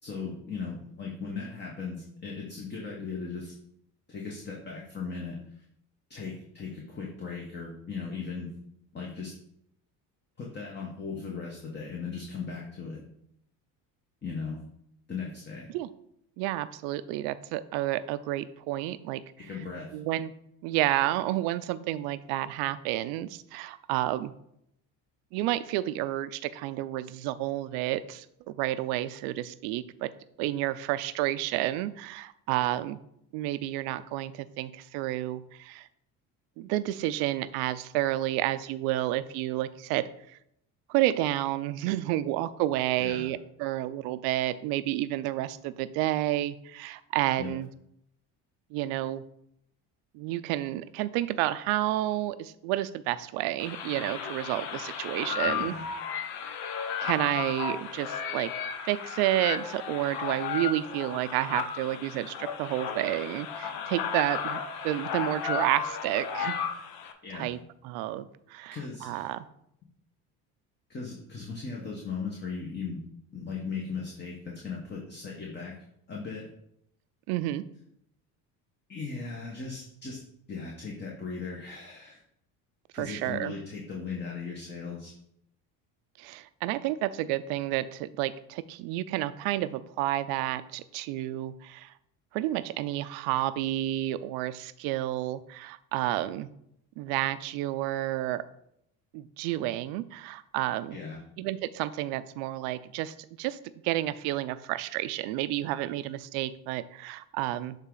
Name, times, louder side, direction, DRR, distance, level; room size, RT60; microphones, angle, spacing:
voice 1, 0.0-3.5 4.1-5.6 6.1-8.5 8.9-9.3 10.4-13.0 14.2-14.6 15.1-15.7 19.4-20.0 43.0-43.3 47.4-47.5 55.5-55.9 67.2-67.5 68.7-69.3 70.9-73.0 73.3-75.7 76.1-76.5 78.9-80.2 80.5-82.2 82.9-85.1 100.9-101.2, left 5 dB, 30° left, -2 dB, 1.3 m, -37 dB
voice 2, 16.4-19.5 19.9-20.3 20.6-24.3 25.3-30.1 30.4-33.0 33.3-35.9 36.6-40.4 40.9-47.7 48.7-49.2 50.1-55.7 57.0-58.5 58.9-66.6 67.3-67.6 67.8-69.5 77.3-77.6 82.9-83.5 86.2-91.9 92.3-96.5 97.0-98.4 99.1-101.0 101.4-103.6 103.8-107.8, right 15 dB, 85° right, 14 dB, 0.5 m, -30 dB
sound 1, 53.6-67.1, left 7 dB, 75° left, 0.8 m, -34 dB
7.3 x 3.6 x 3.9 m, 0.73 s
supercardioid pair, 100°, 37 cm